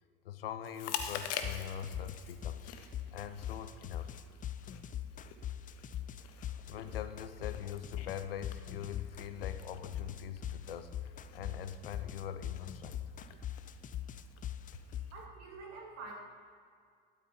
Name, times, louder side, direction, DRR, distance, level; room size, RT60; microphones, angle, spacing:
voice 1, 0.2-2.6 3.1-4.1 6.7-13.4, left 9 dB, 80° left, 11 dB, 0.7 m, -43 dB
Chewing mastication, 0.6-15.2, left 8 dB, 55° left, 1.1 m, -48 dB
sound 1, 1.0-15.1, left 11 dB, 30° left, 0.5 m, -41 dB
voice 2, 15.1-16.1, right 4 dB, 60° right, -2 dB, 3.2 m, -47 dB
12.0 x 8.4 x 5.4 m, 2.1 s
figure-of-eight pair, 65°, 29 cm